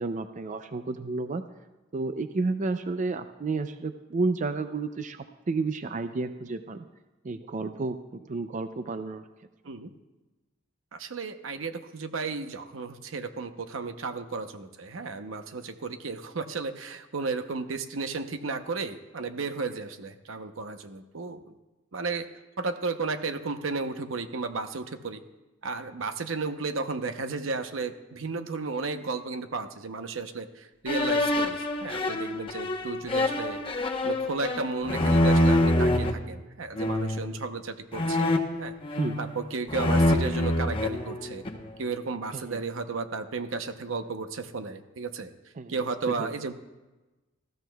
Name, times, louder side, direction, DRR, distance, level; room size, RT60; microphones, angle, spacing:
voice 1, 0.0-1.4 1.9-6.8 7.2-9.3 39.0-39.2 42.3-42.6 45.6-46.3, right 3 dB, 40° right, 9 dB, 0.4 m, -31 dB
voice 2, 10.9-21.5 21.9-22.3 22.6-25.2 25.6-33.6 34.0-38.7 39.2-41.4 41.8-45.3 45.7-46.5, right 4 dB, 85° right, 8 dB, 0.8 m, -33 dB
sound 1, 30.9-36.1 36.8-37.3 37.9-39.4 39.7-41.7, left 1 dB, 25° left, 0.9 m, -25 dB
19.5 x 14.5 x 2.3 m, 1.1 s
head